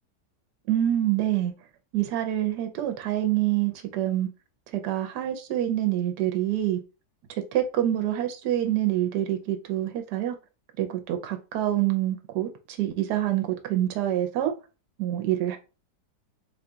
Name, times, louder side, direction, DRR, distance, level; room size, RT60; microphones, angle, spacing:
voice 1, 0.7-1.5 1.9-4.3 4.7-6.8 7.5-10.4 10.8-14.5 15.0-15.6, right 12 dB, 80° right, 1.2 m, -26 dB
4.3 x 2.3 x 3.8 m
omnidirectional pair, 1.8 m